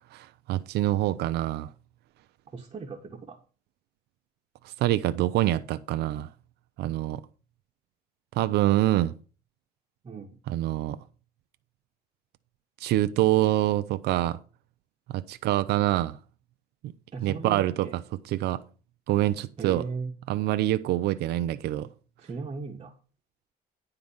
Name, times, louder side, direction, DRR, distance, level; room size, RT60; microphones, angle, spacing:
voice 1, 0.1-1.7 4.6-6.3 6.8-7.2 8.4-9.2 10.5-11.0 12.8-14.4 15.1-16.2 16.8-16.9 17.2-17.9 18.3-18.6 19.1-19.8 20.3-21.9, right 15 dB, 75° right, 0.6 m, -25 dB
voice 2, 2.5-3.4 10.0-10.4 17.1-18.0 19.6-20.1 22.2-23.0, right 4 dB, 30° right, 1.4 m, -37 dB
10.5 x 3.9 x 7.1 m
cardioid pair, 110°, 17 cm